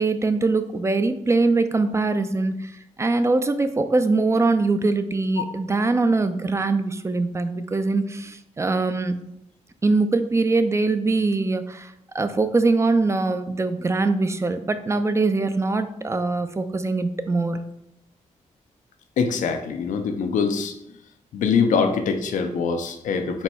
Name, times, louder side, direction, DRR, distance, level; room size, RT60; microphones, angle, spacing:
voice 1, 0.0-2.7 3.0-9.1 9.8-17.6, right 3 dB, 20° right, 10 dB, 0.4 m, -22 dB
voice 2, 19.2-20.7 21.3-23.4, left 5 dB, 85° left, 7 dB, 0.5 m, -23 dB
4.2 x 2.3 x 4.2 m, 0.83 s
cardioid pair, 75°, 13 cm